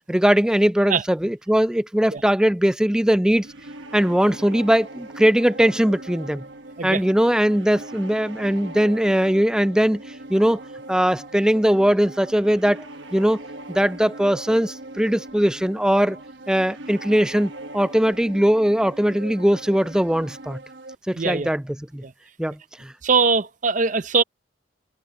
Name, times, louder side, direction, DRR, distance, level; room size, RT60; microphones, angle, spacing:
voice 1, 0.1-3.5 3.9-6.4 6.8-10.0 10.3-10.6 10.9-12.9 13.1-13.4 13.7-16.2 16.5-20.6 21.1-21.6 21.9-22.0 22.4-22.9, equal, 5° right, 0.3 m, -20 dB
sound 1, 3.3-21.0, right 2 dB, 80° right, 1.3 m, -40 dB
voice 2, 21.1-21.5 22.0-22.1 23.0-24.2, right 5 dB, 40° right, 0.6 m, -21 dB
head